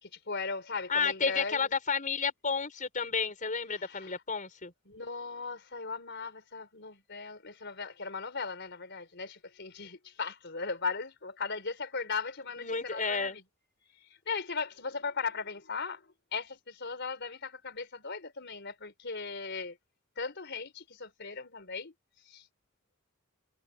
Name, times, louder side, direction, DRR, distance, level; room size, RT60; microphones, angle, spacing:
voice 1, 0.0-1.7 3.7-4.2 4.9-13.4 14.3-19.8 20.2-21.9 22.3-22.4, left 4 dB, 60° left, 4.4 m, -38 dB
voice 2, 0.9-4.7 12.6-13.4, left 5 dB, 40° left, 5.7 m, -31 dB
head